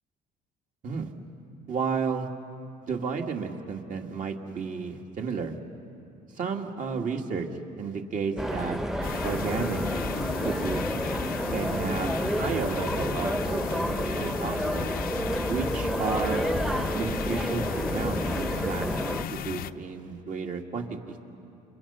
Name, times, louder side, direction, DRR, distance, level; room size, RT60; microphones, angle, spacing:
voice 1, 1.7-2.3 2.9-5.6 6.4-7.5 7.8-8.8 9.2-9.8 10.4-10.8 11.5-14.9 15.5-16.5 16.9-18.9 19.3-21.2, right 5 dB, 50° right, 2 dB, 2.4 m, -32 dB
sound 1, 8.4-19.2, equal, ahead, 1.0 m, -30 dB
sound 2, 9.0-19.7, left 10 dB, 60° left, 0.7 m, -35 dB
29.0 x 28.0 x 5.8 m, 2.7 s
cardioid pair, 110°, 17 cm